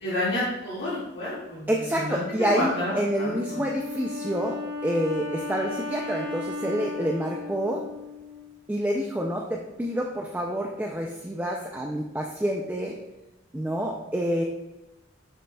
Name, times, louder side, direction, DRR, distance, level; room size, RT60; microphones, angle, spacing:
voice 1, 0.0-1.7 1.9-3.6, left 1 dB, 55° left, -11 dB, 2.0 m, -30 dB
voice 2, 1.7-7.8 8.7-13.0 13.5-14.4, equal, 10° right, 0 dB, 0.4 m, -28 dB
Wind instrument woodwind instrument, 3.1-8.6, left 3 dB, 90° left, 2.2 m, -35 dB
6.8 x 6.2 x 2.3 m, 0.98 s
head